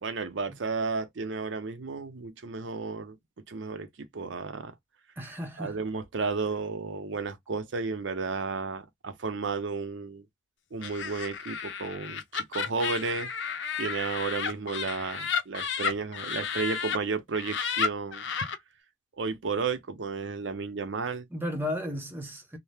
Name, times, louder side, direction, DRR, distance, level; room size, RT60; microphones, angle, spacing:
voice 1, 0.0-3.2 3.5-4.7 5.6-10.2 10.7-13.3 13.8-18.3 19.2-21.3, right 4 dB, 90° right, 0.6 m, -33 dB
voice 2, 5.2-5.8 21.3-22.6, left 1 dB, 10° right, 0.8 m, -34 dB
Laughter, 10.8-17.0 17.3-18.6, left 6 dB, 85° left, 0.6 m, -32 dB
2.7 x 2.0 x 3.3 m
head